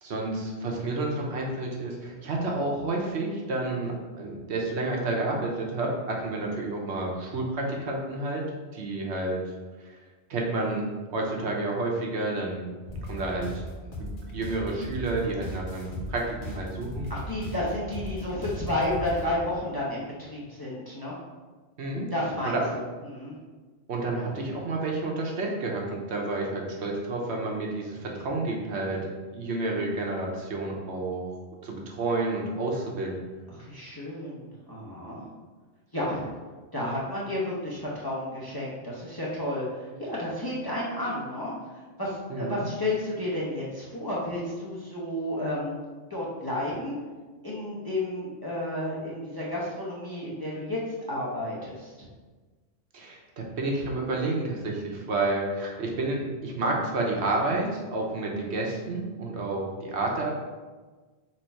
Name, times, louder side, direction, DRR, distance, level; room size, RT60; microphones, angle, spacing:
voice 1, 0.0-8.4 8.7-9.4 9.8-10.0 10.3-12.7 13.1-13.6 14.0-17.1 21.8-22.1 22.4-22.6 23.9-31.2 31.6-33.2 42.3-42.7 52.9-60.3, right 2 dB, 70° right, -1 dB, 1.0 m, -30 dB
sound 1, 12.9-19.4, equal, 50° left, 1.0 m, -38 dB
voice 2, 17.1-21.1 22.1-23.4 33.5-35.3 35.9-36.2 36.7-41.5 42.0-45.8 46.1-47.0 47.4-52.1, left 1 dB, 20° left, -6 dB, 0.8 m, -32 dB
4.3 x 2.6 x 4.4 m, 1.3 s
omnidirectional pair, 1.2 m